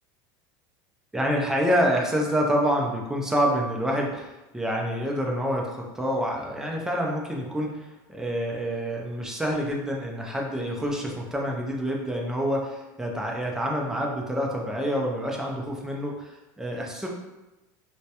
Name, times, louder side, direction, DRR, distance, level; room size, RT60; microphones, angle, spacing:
voice 1, 1.1-17.1, equal, 5° right, -1 dB, 0.3 m, -27 dB
2.2 x 2.0 x 2.8 m, 1.0 s
supercardioid pair, 140°, 10 cm